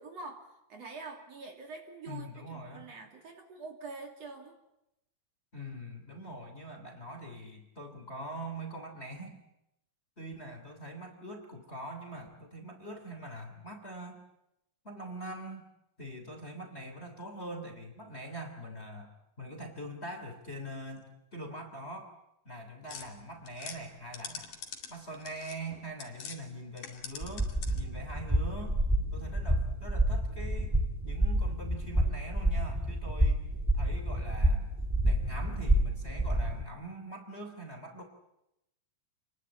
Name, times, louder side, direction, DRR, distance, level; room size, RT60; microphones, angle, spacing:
voice 1, 0.0-4.5, right 3 dB, 50° right, 3 dB, 3.7 m, -45 dB
voice 2, 2.1-2.9 5.5-9.4 10.2-14.2 14.8-15.7 16.0-22.1 22.4-24.6 24.9-28.9 29.1-33.4 33.7-34.7 35.0-38.0, right 1 dB, 20° left, 5 dB, 3.0 m, -43 dB
sound 1, 22.9-26.4 26.7-28.0, left 7 dB, 80° left, 4.1 m, -45 dB
sound 2, 27.2-36.6, right 1 dB, 5° right, 1.9 m, -29 dB
28.5 x 21.5 x 8.7 m, 0.88 s
omnidirectional pair, 3.9 m